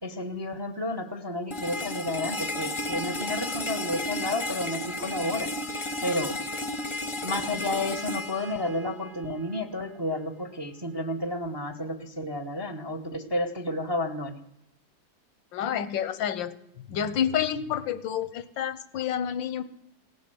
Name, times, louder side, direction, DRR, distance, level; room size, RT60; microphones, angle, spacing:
voice 1, 0.0-5.5 6.0-6.3 7.2-14.4, left 1 dB, 15° right, 9 dB, 1.0 m, -31 dB
sound 1, 1.5-9.5, left 1 dB, 20° left, 0.9 m, -33 dB
voice 2, 15.5-19.6, left 9 dB, 85° left, 14 dB, 1.7 m, -29 dB
17.0 x 10.0 x 7.8 m, 0.80 s
omnidirectional pair, 2.0 m